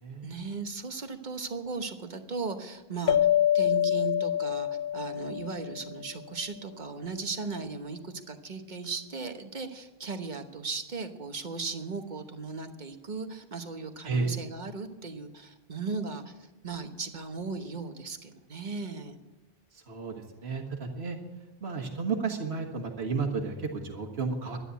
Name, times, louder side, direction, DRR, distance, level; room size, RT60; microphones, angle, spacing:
voice 1, 0.2-3.2 3.5-19.2, right 4 dB, 45° right, 7 dB, 1.3 m, -37 dB
sound 1, 3.1-6.1, left 11 dB, 60° left, 0.7 m, -26 dB
voice 2, 19.9-21.2 21.6-24.6, right 4 dB, 80° right, 2 dB, 1.7 m, -32 dB
12.5 x 9.8 x 8.2 m, 1.1 s
omnidirectional pair, 1.1 m